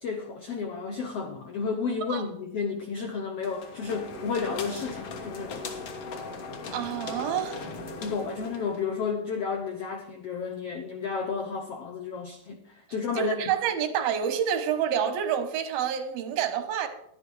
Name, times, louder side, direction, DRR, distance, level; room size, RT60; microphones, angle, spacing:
voice 1, 0.0-5.6 8.0-13.4, left 5 dB, 75° left, 4 dB, 1.4 m, -32 dB
sound 1, 3.4-8.9, left 3 dB, 55° left, 1.8 m, -38 dB
voice 2, 6.7-7.6 13.2-16.9, right 8 dB, 90° right, 7 dB, 2.9 m, -28 dB
11.5 x 10.0 x 4.7 m, 0.72 s
omnidirectional pair, 4.1 m